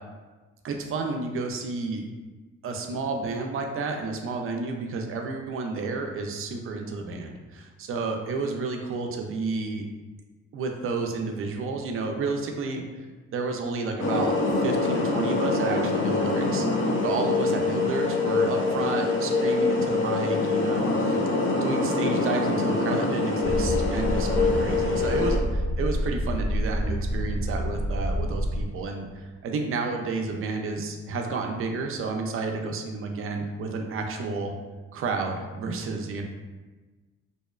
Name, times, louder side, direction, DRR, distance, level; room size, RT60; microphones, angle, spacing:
voice 1, 0.6-2.0 2.6-9.9 10.5-14.3 14.6-16.7 17.0-21.2 21.5-34.5 34.9-36.2, right 3 dB, 45° right, 3 dB, 0.4 m, -31 dB
sound 1, 14.0-25.4, left 3 dB, 45° left, 0.5 m, -25 dB
sound 2, 23.4-28.6, equal, 5° right, 0.7 m, -28 dB
2.7 x 2.1 x 2.2 m, 1.3 s
cardioid pair, 90°, 30 cm